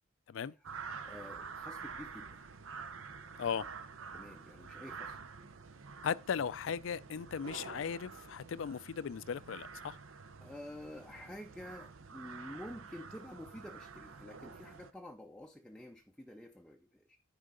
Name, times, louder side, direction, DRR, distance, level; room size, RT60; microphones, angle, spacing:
sound 1, 0.6-14.9, right 5 dB, 75° right, 0.7 m, -48 dB
voice 1, 1.1-2.4 4.1-5.2 10.4-17.2, left 1 dB, 5° left, 0.4 m, -49 dB
voice 2, 6.0-10.0, left 7 dB, 65° left, 0.4 m, -37 dB
10.0 x 5.0 x 3.8 m
head